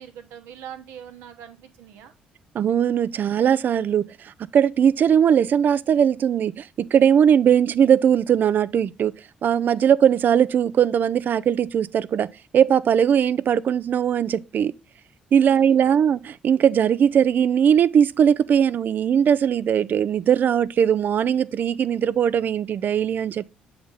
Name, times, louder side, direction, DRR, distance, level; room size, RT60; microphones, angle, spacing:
voice 1, 0.0-2.1 9.7-9.9 15.4-15.9, right 9 dB, 65° right, 0.9 m, -43 dB
voice 2, 2.5-4.1 4.4-9.1 9.4-14.7 15.3-23.5, right 8 dB, 45° right, 0.4 m, -19 dB
7.8 x 4.0 x 3.6 m
figure-of-eight pair, 45°, 4 cm